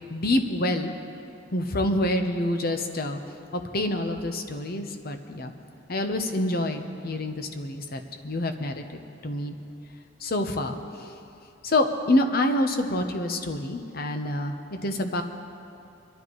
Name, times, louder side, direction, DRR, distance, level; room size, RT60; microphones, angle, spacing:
voice 1, 0.1-0.9 1.5-3.2 3.7-5.5 5.9-8.8 9.2-9.5 10.2-11.2 11.6-14.5 14.8-15.2, left 1 dB, 50° left, 6 dB, 0.9 m, -27 dB
23.0 x 12.0 x 3.1 m, 2.6 s
head